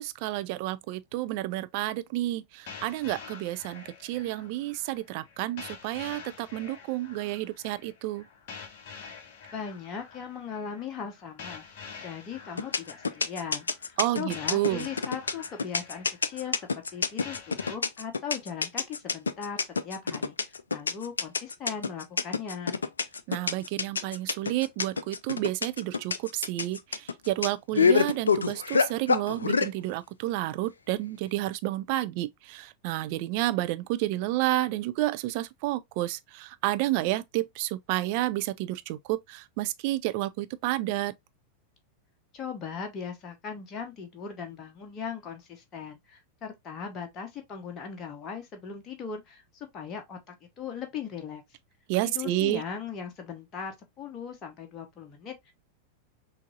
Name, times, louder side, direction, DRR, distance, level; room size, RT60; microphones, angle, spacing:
voice 1, 0.0-8.2 14.0-14.9 23.3-41.1 51.9-52.6, right 16 dB, 45° right, 0.4 m, -30 dB
sound 1, 2.7-17.8, left 6 dB, 50° left, 0.9 m, -47 dB
voice 2, 9.5-11.6 12.0-22.8 42.3-51.4 52.0-55.5, left 6 dB, 30° left, 1.1 m, -39 dB
sound 2, 12.6-29.7, left 5 dB, 75° left, 0.4 m, -26 dB
5.9 x 2.7 x 2.5 m
figure-of-eight pair, 90°, 0 cm